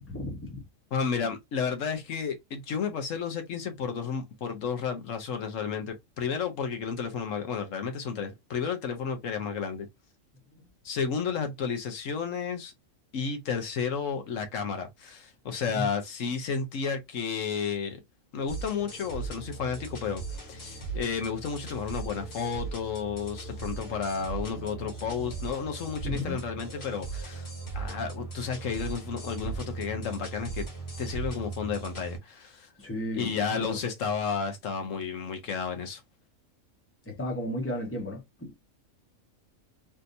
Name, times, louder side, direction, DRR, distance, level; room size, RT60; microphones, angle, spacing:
voice 1, 0.1-0.6 10.5-10.6 15.7-15.9 26.0-26.4 32.8-33.8 37.0-38.5, left 1 dB, 10° left, 1.1 m, -34 dB
voice 2, 0.9-9.9 10.8-12.7 13.1-18.0 18.3-27.5 27.7-30.6 31.0-32.7 33.2-36.0, left 6 dB, 70° left, 1.2 m, -32 dB
sound 1, 18.5-32.2, right 4 dB, 50° left, 1.6 m, -38 dB
3.4 x 2.7 x 2.6 m
omnidirectional pair, 1.4 m